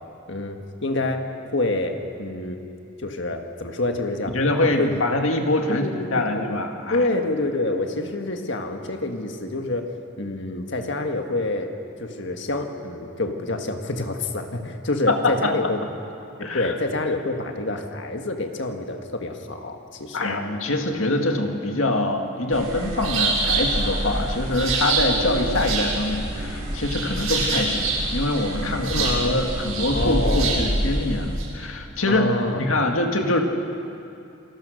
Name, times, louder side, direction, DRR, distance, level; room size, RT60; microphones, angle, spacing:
voice 1, 0.3-2.6 3.0-5.0 5.7-6.5 6.9-11.7 12.0-15.8 16.4-20.4 28.9-29.4 29.9-30.7 32.1-32.6, left 2 dB, 60° left, 4 dB, 1.8 m, -27 dB
voice 2, 4.3-7.0 15.1-15.5 16.4-16.7 20.1-33.4, left 2 dB, 75° left, 3 dB, 2.1 m, -24 dB
sound 1, 22.5-31.4, right 2 dB, 85° right, 6.9 m, -25 dB
28.5 x 18.0 x 6.6 m, 2.7 s
head